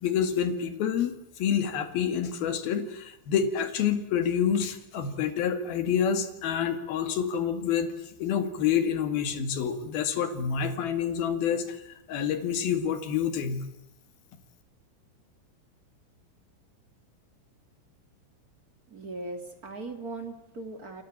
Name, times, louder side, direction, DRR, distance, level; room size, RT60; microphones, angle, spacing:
voice 1, 0.0-7.9 8.2-11.8 12.1-13.6, left 8 dB, 55° left, 9 dB, 3.4 m, -28 dB
voice 2, 18.9-21.0, right 2 dB, 75° right, 5 dB, 0.8 m, -39 dB
30.0 x 22.5 x 8.7 m, 0.80 s
omnidirectional pair, 6.0 m